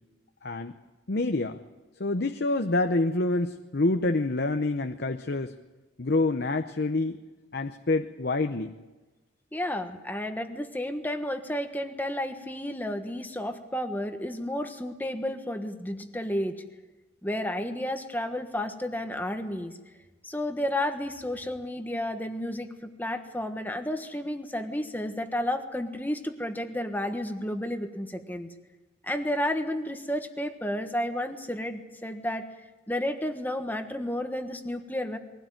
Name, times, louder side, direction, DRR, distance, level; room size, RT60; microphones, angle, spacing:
voice 1, 0.4-0.8 1.1-1.6 2.0-5.5 6.0-7.2 7.5-8.7, left 2 dB, 55° left, 7 dB, 0.9 m, -27 dB
voice 2, 9.5-16.6 17.2-19.7 20.2-28.5 29.0-32.4 32.9-35.2, left 1 dB, 10° left, 6 dB, 1.4 m, -32 dB
22.0 x 17.0 x 9.2 m, 1.2 s
head